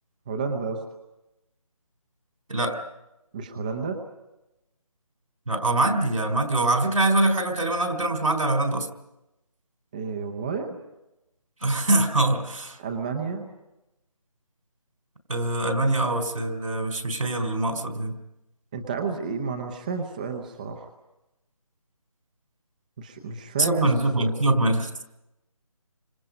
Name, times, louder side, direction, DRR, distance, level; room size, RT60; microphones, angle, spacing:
voice 1, 0.3-0.8 3.3-4.0 9.9-10.8 12.8-13.5 18.7-20.9 23.0-23.9 24.2-24.3, right 5 dB, 15° right, 4 dB, 0.8 m, -31 dB
voice 2, 5.5-8.9 11.6-12.8 15.3-18.2 23.6-24.9, right 2 dB, 70° right, 6 dB, 4.2 m, -23 dB
29.5 x 26.0 x 5.3 m, 0.94 s
figure-of-eight pair, 170°, 19 cm